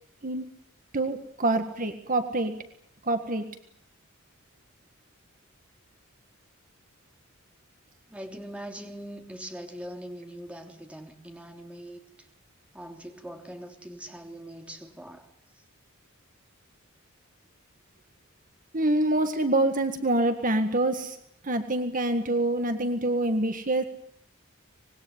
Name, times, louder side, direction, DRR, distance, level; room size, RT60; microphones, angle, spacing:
voice 1, 0.9-2.5 3.0-3.4 18.7-21.2 21.4-23.8, right 2 dB, 40° right, 8 dB, 1.7 m, -26 dB
voice 2, 8.1-12.0 12.7-15.3, right 1 dB, 5° right, 4 dB, 3.3 m, -42 dB
25.5 x 21.0 x 9.5 m, 0.70 s
head